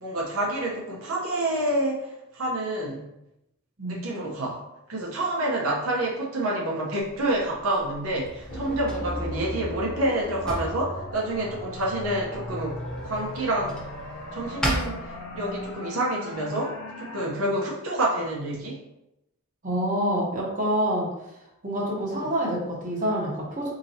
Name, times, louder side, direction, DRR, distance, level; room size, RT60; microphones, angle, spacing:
voice 1, 0.0-3.1 3.8-4.6 4.9-13.8 14.3-18.8 22.2-22.3, right 1 dB, 75° right, -3 dB, 0.8 m, -28 dB
Drawer open or close, 7.0-15.7, equal, 5° left, 0.7 m, -37 dB
sound 1, 8.5-17.3, left 1 dB, 80° left, 0.7 m, -37 dB
voice 2, 19.6-21.1 21.6-23.7, equal, 35° right, -4 dB, 1.0 m, -26 dB
4.1 x 2.9 x 2.7 m, 0.87 s
head